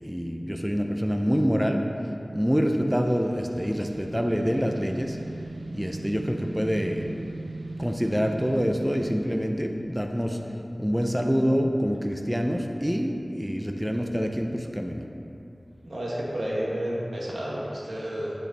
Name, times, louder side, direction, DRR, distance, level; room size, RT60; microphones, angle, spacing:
voice 1, 0.0-1.8 2.3-5.2 5.7-7.1 7.8-10.4 10.8-15.0, equal, 5° right, 3 dB, 0.5 m, -26 dB
sound 1, 3.0-9.4, right 2 dB, 60° right, 0.5 m, -39 dB
voice 2, 15.8-18.3, equal, 85° right, -5 dB, 1.7 m, -31 dB
10.0 x 6.6 x 4.1 m, 2.7 s
wide cardioid pair, 65°, 0 cm